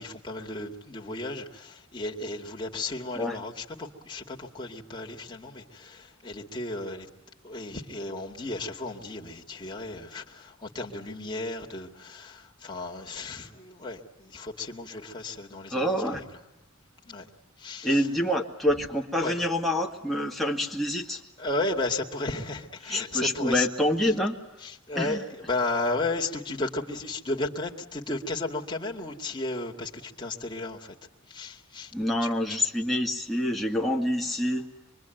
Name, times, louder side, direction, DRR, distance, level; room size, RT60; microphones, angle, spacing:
voice 1, 0.0-7.1 7.4-16.4 17.1-17.3 17.6-18.1 18.8-18.9 19.2-19.3 21.4-23.7 24.0-24.1 24.6-31.0 31.3-31.9 32.2-32.6, left 2 dB, 20° left, -1 dB, 2.3 m, -34 dB
voice 2, 15.7-16.2 17.8-21.2 22.9-24.4 25.0-25.2 31.9-34.7, left 1 dB, ahead, 0 dB, 2.1 m, -27 dB
25.5 x 23.5 x 9.2 m, 0.92 s
head